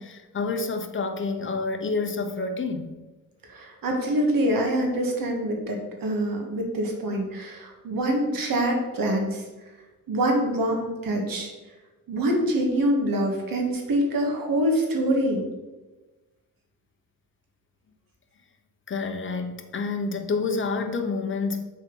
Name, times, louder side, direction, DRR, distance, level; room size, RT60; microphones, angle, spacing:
voice 1, 0.0-3.0 18.9-21.6, left 4 dB, 35° left, 5 dB, 0.8 m, -28 dB
voice 2, 3.5-9.4 10.1-11.5 12.1-15.4, right 1 dB, 85° right, 1 dB, 1.7 m, -25 dB
6.6 x 4.2 x 5.5 m, 1.2 s
wide cardioid pair, 125°, 34 cm